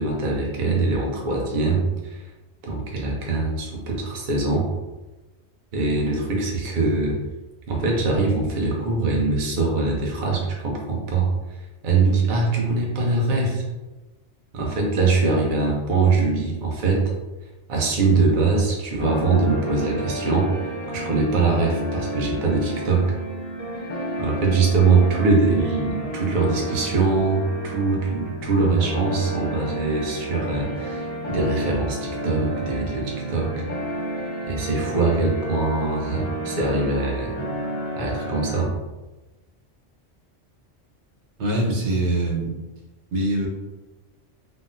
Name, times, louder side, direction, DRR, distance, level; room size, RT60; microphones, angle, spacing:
voice 1, 0.0-2.3 2.6-4.7 5.7-7.2 7.7-11.3 11.8-13.6 14.5-17.1 17.7-23.1 24.2-33.5 34.4-37.3 38.0-38.7, right 3 dB, 50° right, -2 dB, 0.8 m, -22 dB
sound 1, 19.0-38.6, right 1 dB, 45° left, 0.6 m, -31 dB
voice 2, 41.4-42.5 43.1-43.5, right 1 dB, 85° right, -4 dB, 1.1 m, -23 dB
3.7 x 2.0 x 2.6 m, 1.1 s
omnidirectional pair, 1.2 m